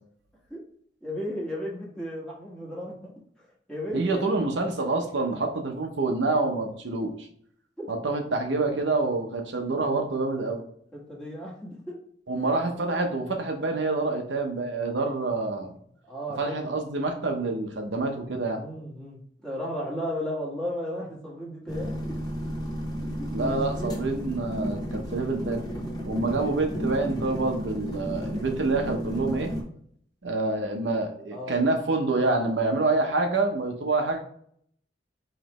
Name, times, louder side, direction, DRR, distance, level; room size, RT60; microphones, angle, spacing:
voice 1, 1.0-3.1 3.4-4.2 7.8-7.9 10.9-12.0 16.0-16.8 18.6-22.1 23.2-24.0 31.3-31.5, equal, 5° left, -5 dB, 1.5 m, -35 dB
voice 2, 3.9-7.3 7.9-10.6 12.3-15.7 16.4-18.6 23.3-25.6 26.1-29.5 30.2-34.2, right 3 dB, 80° right, 3 dB, 0.9 m, -27 dB
sound 1, 21.7-29.6, equal, 20° left, 1.0 m, -33 dB
5.1 x 3.2 x 3.0 m, 0.64 s
head